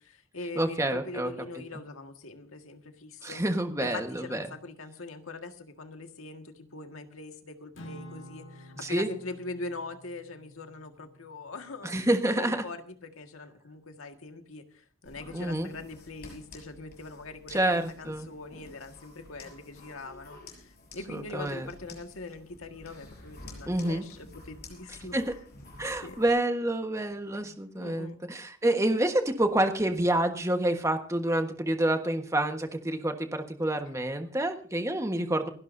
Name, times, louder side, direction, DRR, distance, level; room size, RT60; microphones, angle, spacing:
voice 1, 0.0-3.4 3.8-12.0 12.4-25.2 26.0-26.2 27.4-28.2, left 3 dB, 85° left, 6 dB, 1.7 m, -42 dB
voice 2, 0.6-1.3 3.2-4.4 8.8-9.1 11.8-12.6 15.3-15.7 17.5-18.3 21.1-21.7 23.7-24.0 25.1-25.3 25.8-35.5, right 1 dB, 15° right, 6 dB, 1.3 m, -28 dB
Acoustic guitar / Strum, 7.7-12.2, equal, 70° left, 1.7 m, -50 dB
sound 1, 15.0-26.3, left 2 dB, 50° left, 6.1 m, -50 dB
29.0 x 11.5 x 2.7 m, 0.44 s
head